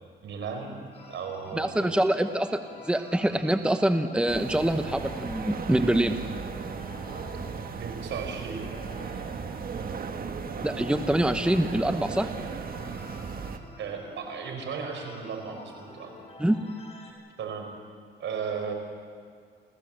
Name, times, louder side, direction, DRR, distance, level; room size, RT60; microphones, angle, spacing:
voice 1, 0.0-2.0 7.8-8.7 13.8-16.1 17.4-17.7 18.2-18.7, right 6 dB, 70° right, 4 dB, 4.8 m, -35 dB
sound 1, 0.9-17.1, left 2 dB, 30° left, 6.5 m, -48 dB
voice 2, 1.5-6.2 10.6-12.3 16.4-16.6, right 1 dB, 5° right, 8 dB, 1.0 m, -25 dB
sound 2, 4.3-13.6, right 5 dB, 45° right, 1.5 m, -36 dB
29.5 x 15.5 x 7.6 m, 2.1 s
cardioid pair, 90°, 20 cm